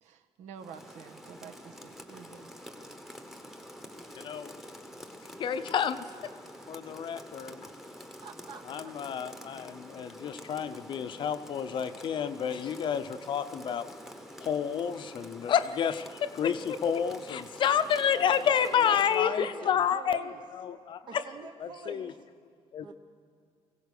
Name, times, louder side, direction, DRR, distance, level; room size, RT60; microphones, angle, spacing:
voice 1, 0.0-2.5, right 7 dB, 90° right, 7 dB, 1.3 m, -49 dB
Rain, 0.6-19.3, equal, 5° right, 1.0 m, -48 dB
voice 2, 4.2-4.6 5.4-6.1 6.7-7.7 8.7-13.9 14.4-20.2 20.5-21.2 21.6-22.1 22.7-22.9, left 8 dB, 45° left, 11 dB, 0.6 m, -29 dB
voice 3, 8.2-8.9 18.5-20.4 21.1-22.2 22.8-22.9, right 5 dB, 40° right, 6 dB, 0.8 m, -46 dB
23.5 x 16.5 x 6.6 m, 2.2 s
cardioid pair, 160°, 12 cm